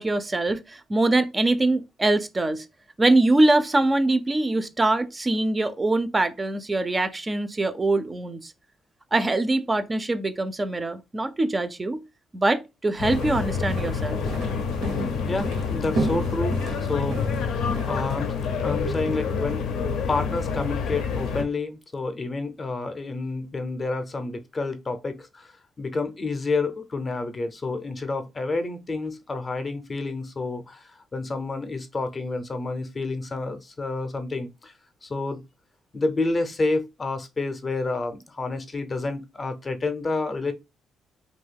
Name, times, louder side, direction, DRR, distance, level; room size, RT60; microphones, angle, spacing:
voice 1, 0.0-2.7 3.0-8.5 9.1-12.0 12.3-14.2, right 2 dB, 25° right, 0.4 m, -23 dB
sound 1, 12.9-18.1, right 2 dB, 90° right, 0.8 m, -34 dB
sound 2, 13.0-21.4, left 5 dB, 85° left, 0.5 m, -27 dB
voice 2, 15.3-18.3 18.6-19.7 20.1-25.5 25.8-34.7 35.0-35.4 35.9-40.5, left 3 dB, 30° left, 0.5 m, -29 dB
2.6 x 2.2 x 3.3 m
cardioid pair, 90°, 0 cm